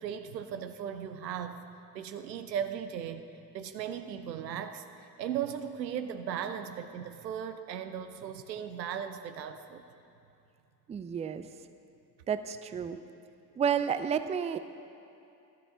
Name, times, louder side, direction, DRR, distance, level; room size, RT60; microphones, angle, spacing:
voice 1, 0.0-1.6 1.9-3.2 3.5-9.8, right 8 dB, 90° right, 9 dB, 0.6 m, -37 dB
voice 2, 10.9-11.5 12.3-13.0 13.6-14.6, right 7 dB, 15° right, 11 dB, 0.4 m, -31 dB
12.5 x 12.0 x 3.8 m, 2.7 s
figure-of-eight pair, 45°, 50 cm